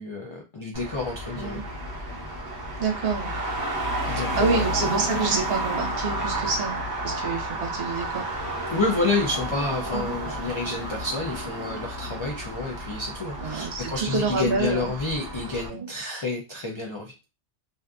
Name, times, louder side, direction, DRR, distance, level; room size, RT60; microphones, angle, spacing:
voice 1, 0.0-1.6 4.0-4.6 8.7-17.1, left 3 dB, 50° left, 0 dB, 0.3 m, -29 dB
Traffic noise roadway noise, 0.7-15.7, right 1 dB, 25° right, 0.6 m, -31 dB
voice 2, 2.8-3.3 4.1-6.8 7.0-8.3 9.9-10.1 13.4-14.9 15.7-15.9, right 4 dB, 65° right, 3 dB, 0.9 m, -27 dB
2.5 x 2.5 x 2.2 m, 0.27 s
omnidirectional pair, 1.1 m